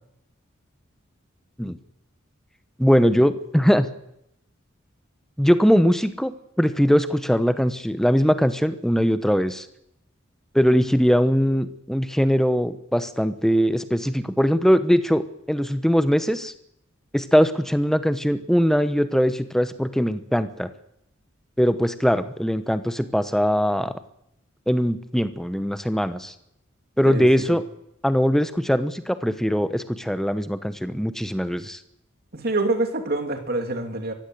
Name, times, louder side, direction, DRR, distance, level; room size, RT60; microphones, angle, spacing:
voice 1, 2.8-3.9 5.4-9.7 10.5-16.5 17.1-20.7 21.6-23.9 24.7-26.3 27.0-27.6 28.0-31.8, equal, ahead, 11 dB, 1.0 m, -21 dB
voice 2, 27.1-27.4 32.3-34.1, right 2 dB, 50° right, 5 dB, 2.7 m, -26 dB
23.5 x 15.5 x 7.9 m, 0.78 s
head